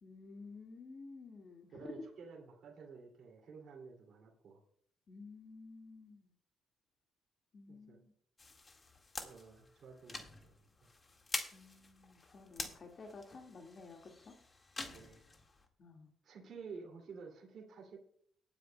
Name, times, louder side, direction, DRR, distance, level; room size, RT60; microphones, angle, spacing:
voice 1, 0.0-1.9 5.1-6.3 7.5-8.1 11.5-14.4 15.8-16.1, left 4 dB, 45° left, 2 dB, 1.9 m, -52 dB
voice 2, 1.7-4.6 7.7-8.0 9.2-10.9 14.9-15.2 16.2-18.0, right 5 dB, 60° right, -1 dB, 2.5 m, -52 dB
sound 1, 8.4-15.7, left 3 dB, 30° left, 1.8 m, -47 dB
19.0 x 9.7 x 2.2 m, 0.63 s
cardioid pair, 90°, 0 cm